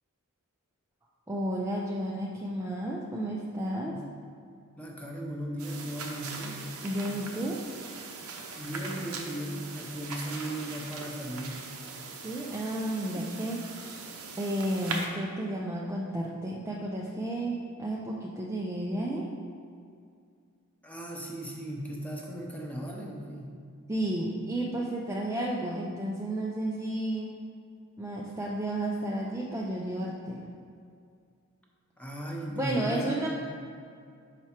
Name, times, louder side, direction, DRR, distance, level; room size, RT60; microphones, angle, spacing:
voice 1, 1.3-3.9 6.8-7.6 12.2-14.0 14.4-19.3 23.9-27.3 28.0-30.4 32.6-33.3, right 1 dB, 15° right, -4 dB, 0.4 m, -32 dB
voice 2, 4.8-6.6 8.6-11.6 20.8-23.5 32.0-33.3, right 1 dB, 5° left, -1 dB, 0.8 m, -37 dB
sound 1, 5.6-15.1, right 4 dB, 75° right, 0.7 m, -40 dB
5.8 x 4.6 x 4.3 m, 2.3 s
head